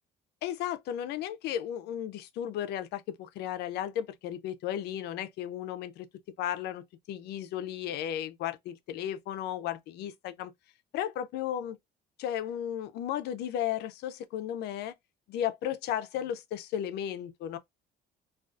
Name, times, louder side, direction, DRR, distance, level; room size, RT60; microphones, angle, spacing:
voice 1, 0.4-6.1 6.4-10.5 10.9-11.8 12.2-14.9 15.3-17.6, left 10 dB, 80° left, 0.4 m, -34 dB
2.3 x 2.3 x 2.4 m
cardioid pair, 110°, 17 cm